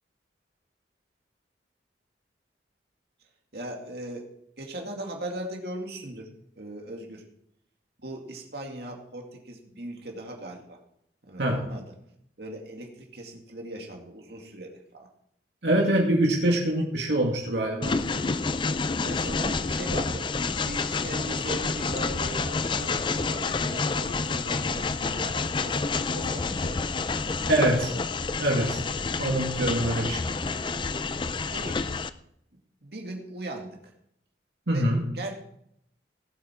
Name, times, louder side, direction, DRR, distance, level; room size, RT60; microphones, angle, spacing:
voice 1, 3.5-4.3 4.6-6.3 6.6-7.2 8.0-10.8 11.2-11.8 12.4-15.1 18.1-18.4 19.0-20.3 20.6-25.4 25.7-25.8 26.1-26.8 27.1-27.5 28.9-29.2 29.9-30.2 31.5-31.8 32.8-33.9 34.7-35.4, right 1 dB, 65° right, 1 dB, 2.4 m, -39 dB
voice 2, 15.6-18.0 27.5-27.9 28.4-28.8 29.2-30.2 34.7-35.0, right 1 dB, 85° right, 0 dB, 2.2 m, -24 dB
Train, 17.8-32.1, left 4 dB, 25° left, 0.4 m, -29 dB
18.0 x 8.0 x 4.5 m, 0.72 s
head